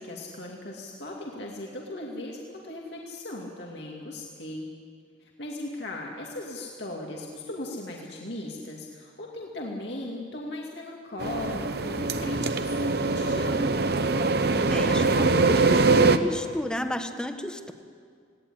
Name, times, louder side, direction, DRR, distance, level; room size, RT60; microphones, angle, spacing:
voice 1, 0.0-4.7 5.2-13.8, left 1 dB, 70° left, -2 dB, 2.5 m, -38 dB
sound 1, 11.2-16.2, right 3 dB, 60° right, 0.9 m, -23 dB
voice 2, 14.7-17.7, left 1 dB, 5° left, 6 dB, 1.2 m, -32 dB
19.0 x 17.5 x 10.0 m, 2.1 s
head